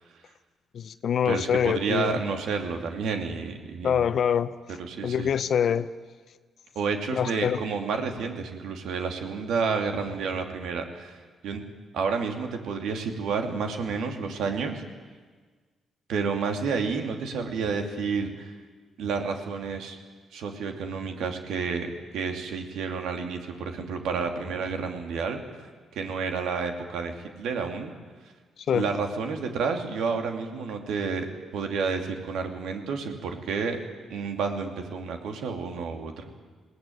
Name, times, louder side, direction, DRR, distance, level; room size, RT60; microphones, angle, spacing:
voice 1, 0.7-2.2 3.8-4.5 5.0-5.9 7.1-7.6 28.7-28.9, left 8 dB, 65° left, 0.9 m, -25 dB
voice 2, 1.2-4.1 4.8-5.3 6.7-11.6 11.9-14.8 16.1-18.5 19.0-20.0 20.3-25.6 25.9-27.9 28.7-33.8 34.1-36.2, right 5 dB, 80° right, 2.8 m, -30 dB
21.0 x 17.5 x 9.4 m
supercardioid pair, 65°, 0 cm